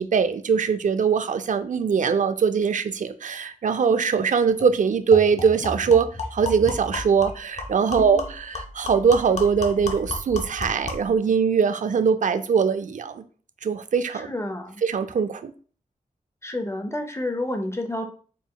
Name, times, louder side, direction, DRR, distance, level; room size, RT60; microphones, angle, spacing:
voice 1, 0.0-13.2 13.6-14.3 14.8-15.5, right 6 dB, 60° right, 11 dB, 0.4 m, -22 dB
sound 1, 4.2-4.3 4.6-4.7 5.1-11.1, left 2 dB, 50° left, 0.7 m, -34 dB
voice 2, 8.0-8.3 14.1-14.8 16.4-18.0, left 1 dB, 20° left, 5 dB, 0.5 m, -30 dB
4.0 x 3.7 x 2.2 m, 0.41 s
wide cardioid pair, 75°, 15 cm